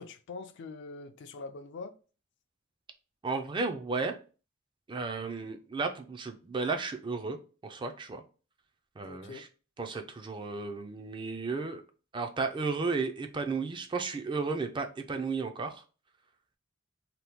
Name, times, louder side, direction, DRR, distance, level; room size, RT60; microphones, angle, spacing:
voice 1, 0.0-2.0 9.0-9.4, left 3 dB, 60° left, 0.4 m, -43 dB
voice 2, 3.2-4.1 4.9-7.4 7.6-8.2 9.0-9.5 9.8-11.8 12.1-15.8, right 4 dB, 25° right, 0.4 m, -33 dB
2.9 x 2.2 x 3.4 m
head